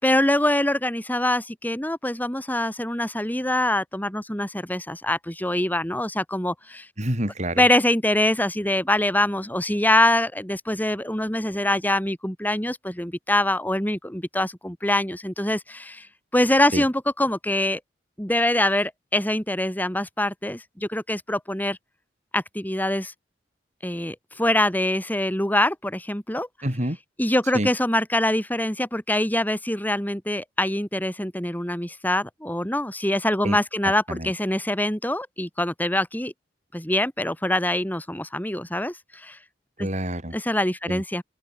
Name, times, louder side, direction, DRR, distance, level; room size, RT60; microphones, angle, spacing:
voice 1, 0.0-6.9 7.6-16.1 16.3-17.8 18.2-21.8 22.3-23.1 23.8-26.5 27.2-36.3 36.7-39.4 39.8-39.9 40.3-41.2, left 1 dB, 10° left, 4.7 m, -24 dB
voice 2, 7.0-7.6 16.7-16.8 26.6-27.0 27.5-27.7 33.4-33.6 34.1-34.3 39.8-40.3 40.9-41.0, right 1 dB, 40° right, 6.3 m, -27 dB
open air
head